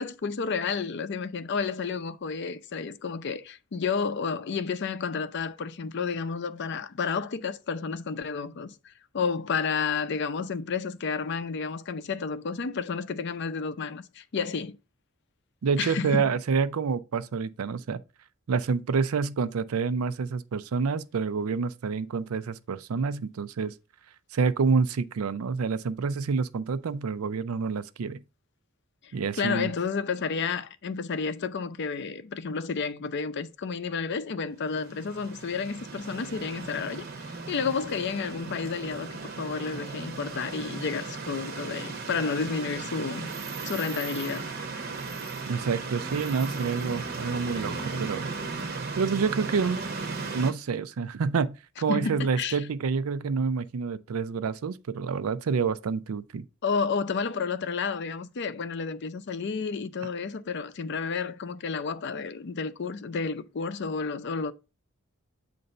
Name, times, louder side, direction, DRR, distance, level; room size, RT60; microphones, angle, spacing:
voice 1, 0.0-14.8 15.8-16.3 29.0-43.3 43.6-44.5 51.9-52.7 56.6-64.5, left 5 dB, 55° left, 0.5 m, -31 dB
voice 2, 15.6-18.0 18.5-23.7 24.3-28.2 29.1-29.7 45.5-48.3 49.0-49.8 50.3-56.4, right 5 dB, 85° right, 0.4 m, -28 dB
sound 1, 34.7-50.5, right 4 dB, 45° right, 0.8 m, -36 dB
7.8 x 2.6 x 5.3 m
head